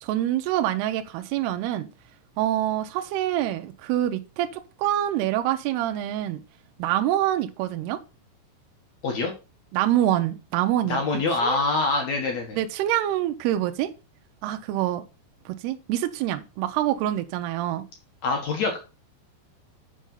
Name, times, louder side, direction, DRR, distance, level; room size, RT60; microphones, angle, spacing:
voice 1, 0.0-1.9 2.4-6.4 6.8-8.0 9.7-11.0 11.4-11.6 12.6-13.9 14.4-15.0 15.5-17.9, right 12 dB, 80° right, 2.5 m, -26 dB
voice 2, 10.9-12.6 18.2-18.8, left 3 dB, 65° left, 1.7 m, -25 dB
6.5 x 6.2 x 5.5 m
omnidirectional pair, 5.3 m